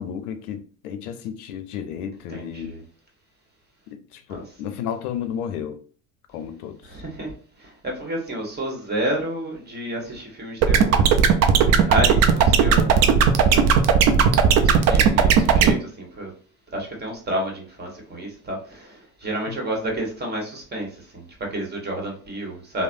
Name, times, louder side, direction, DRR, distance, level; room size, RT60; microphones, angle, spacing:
voice 1, 0.0-2.7 3.9-5.8 6.3-6.8 19.5-19.6, left 8 dB, 75° left, 0.6 m, -32 dB
voice 2, 2.3-2.8 4.3-4.4 6.8-13.1 13.5-13.7 14.5-16.3 16.7-22.8, right 1 dB, 20° right, 1.2 m, -30 dB
sound 1, 10.6-15.7, right 7 dB, 40° right, 0.5 m, -16 dB
3.1 x 2.1 x 2.5 m
hypercardioid pair, 80°, 44 cm